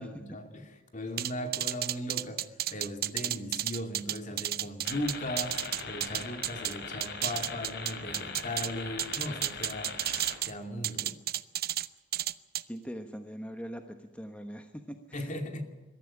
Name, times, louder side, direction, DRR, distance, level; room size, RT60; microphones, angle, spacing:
voice 1, 0.0-10.0 10.4-11.2 15.1-15.6, left 1 dB, 45° left, 6 dB, 2.6 m, -38 dB
sound 1, 1.2-6.7 7.0-8.7 9.0-10.5 10.8-11.9 12.1-12.6, right 12 dB, 55° right, 0.7 m, -32 dB
sound 2, 4.8-10.4, left 4 dB, 65° left, 3.2 m, -41 dB
voice 2, 12.7-15.3, equal, 5° left, 6 dB, 1.1 m, -42 dB
22.0 x 13.5 x 9.9 m, 1.2 s
head